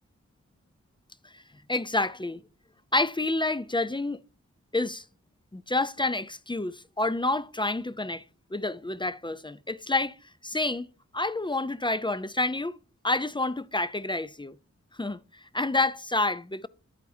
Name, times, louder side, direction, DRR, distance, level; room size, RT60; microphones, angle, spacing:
voice 1, 1.7-2.4 2.9-4.2 4.7-5.0 5.5-8.2 8.5-10.1 10.4-10.9 11.1-12.7 13.0-14.5 15.0-15.2 15.5-16.7, left 2 dB, 15° left, 0.5 m, -28 dB
11.0 x 8.2 x 2.7 m
cardioid pair, 50°, 30 cm